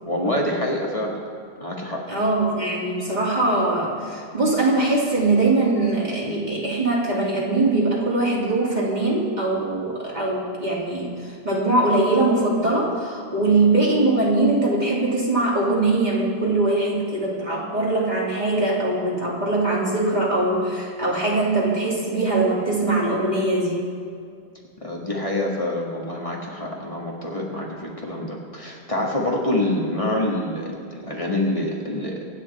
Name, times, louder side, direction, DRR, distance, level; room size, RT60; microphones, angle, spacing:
voice 1, 0.1-1.2 1.6-2.0 24.8-32.2, left 1 dB, 30° left, -3 dB, 2.0 m, -26 dB
voice 2, 2.1-23.9, right 2 dB, 40° right, -5 dB, 3.0 m, -22 dB
25.0 x 9.3 x 4.3 m, 2.3 s
omnidirectional pair, 1.1 m